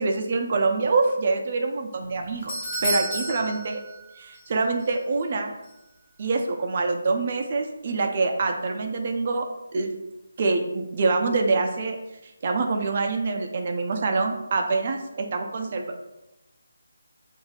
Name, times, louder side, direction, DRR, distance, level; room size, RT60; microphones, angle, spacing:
voice 1, 0.0-3.8 4.2-5.5 6.2-9.9 10.4-12.0 12.4-16.0, right 3 dB, 40° right, 3 dB, 0.6 m, -25 dB
Doorbell, 2.0-4.5 4.8-4.9 5.6-5.7, right 1 dB, 25° left, 1.1 m, -31 dB
7.0 x 2.7 x 2.4 m, 0.93 s
figure-of-eight pair, 165°, 0 cm